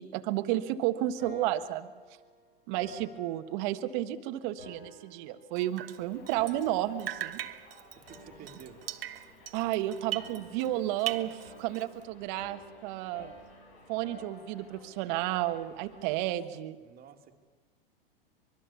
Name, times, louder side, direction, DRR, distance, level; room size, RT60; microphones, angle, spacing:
voice 1, 0.0-1.9 2.7-7.4 9.5-13.3 13.9-16.8, right 14 dB, 55° right, 9 dB, 1.5 m, -32 dB
sound 1, 1.2-4.1 4.6-5.9 6.3-7.7 8.1-9.8 10.2-14.9, left 2 dB, 85° left, 6.4 m, -53 dB
Drip, 5.6-6.7 7.0-10.7 11.0-12.0, right 12 dB, 75° right, 1.3 m, -40 dB
Subway metro underground, 6.0-16.3, left 3 dB, 45° left, 6.4 m, -58 dB
voice 2, 7.9-8.8 16.8-17.3, right 7 dB, 30° right, 5 dB, 2.4 m, -51 dB
25.0 x 22.5 x 7.1 m, 1.4 s
hypercardioid pair, 100°, 29 cm